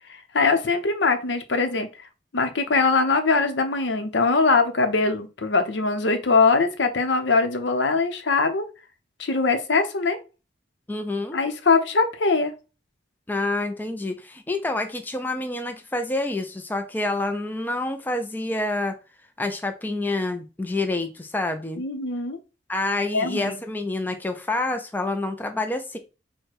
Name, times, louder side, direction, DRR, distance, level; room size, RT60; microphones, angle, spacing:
voice 1, 0.1-1.9 2.3-8.6 9.2-10.2 11.3-12.5 21.8-22.4 23.1-23.6, left 4 dB, 80° left, 0.7 m, -22 dB
voice 2, 10.9-11.4 13.3-19.0 19.4-21.8 22.7-26.0, left 2 dB, 10° left, 0.4 m, -27 dB
4.8 x 2.2 x 4.4 m
head